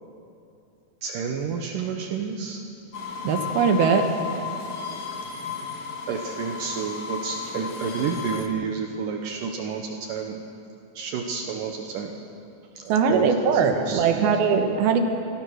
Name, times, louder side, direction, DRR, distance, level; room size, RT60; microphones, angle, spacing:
voice 1, 1.0-2.6 6.1-10.4 11.0-12.2 12.8-14.3, right 6 dB, 70° right, 3 dB, 2.5 m, -30 dB
sound 1, 2.9-8.5, left 6 dB, 60° left, 2.5 m, -34 dB
voice 2, 3.2-4.1 12.9-15.0, right 6 dB, 85° right, 5 dB, 3.3 m, -21 dB
25.5 x 15.5 x 6.4 m, 2.6 s
omnidirectional pair, 4.2 m